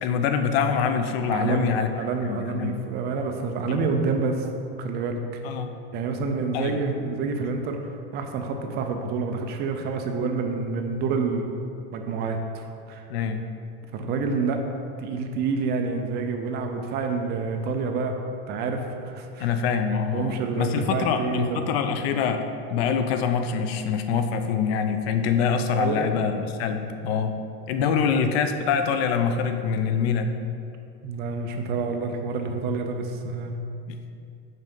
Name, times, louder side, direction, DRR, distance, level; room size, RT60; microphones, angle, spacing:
voice 1, 0.0-1.9 2.2-2.8 3.7-3.9 5.4-5.7 6.5-6.8 13.1-13.4 19.4-22.4 22.7-27.3 27.7-30.3, left 6 dB, 75° left, 7 dB, 0.6 m, -25 dB
voice 2, 1.3-4.5 4.8-5.2 5.9-7.8 8.1-11.5 11.9-13.0 13.9-14.6 15.0-18.2 18.5-19.5 20.1-21.6 25.8-26.1 27.8-28.0 31.0-33.6, right 4 dB, 35° right, 4 dB, 0.5 m, -28 dB
5.6 x 4.6 x 5.3 m, 2.5 s
supercardioid pair, 160°, 31 cm